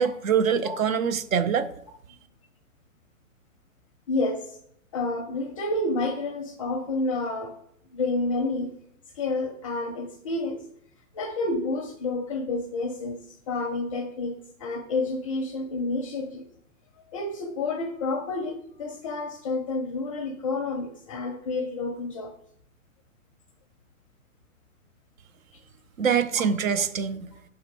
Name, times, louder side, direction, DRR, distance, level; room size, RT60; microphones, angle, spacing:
voice 1, 0.0-1.7 26.0-27.3, right 7 dB, 70° right, 11 dB, 0.8 m, -24 dB
voice 2, 4.1-4.6 4.9-7.6 7.9-8.7 9.2-10.7 11.1-16.4 17.1-22.3, left 2 dB, 25° left, 5 dB, 0.5 m, -29 dB
6.3 x 3.6 x 4.6 m, 0.70 s
hypercardioid pair, 130°, 42 cm